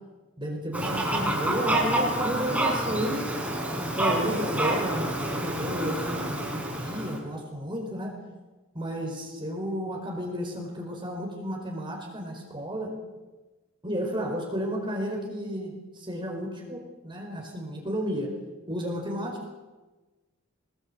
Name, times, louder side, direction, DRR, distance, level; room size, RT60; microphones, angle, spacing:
voice 1, 0.4-3.3 3.8-8.1 8.7-12.9 13.8-18.3 18.7-19.5, equal, 25° right, 1 dB, 4.7 m, -32 dB
Fowl, 0.7-7.2, right 1 dB, 10° right, 5.4 m, -28 dB
23.0 x 20.5 x 8.6 m, 1.2 s
head